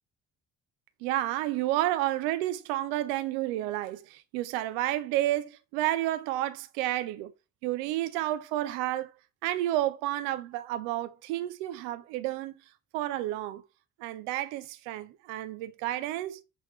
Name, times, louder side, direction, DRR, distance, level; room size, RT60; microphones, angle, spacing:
voice 1, 1.0-7.3 7.6-9.1 9.4-12.6 12.9-13.6 14.0-16.4, right 14 dB, 80° right, 0.8 m, -31 dB
7.3 x 4.3 x 3.2 m
hypercardioid pair, 50°, 36 cm